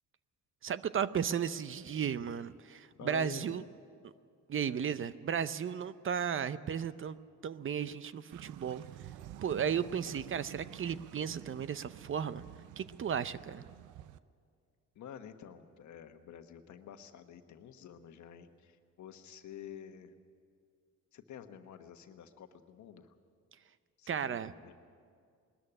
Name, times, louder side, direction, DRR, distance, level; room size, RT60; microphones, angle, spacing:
voice 1, 0.6-3.6 4.5-7.2 7.4-8.8 9.4-12.4 12.8-13.6 24.1-24.5, right 8 dB, 45° right, 15 dB, 0.6 m, -34 dB
voice 2, 3.0-3.6 14.9-20.1 21.1-23.1 24.0-24.7, left 8 dB, 70° left, 7 dB, 1.3 m, -49 dB
sound 1, 8.3-14.2, right 13 dB, 80° right, 0.6 m, -50 dB
20.0 x 13.0 x 9.9 m, 2.2 s
cardioid pair, 90°, 30 cm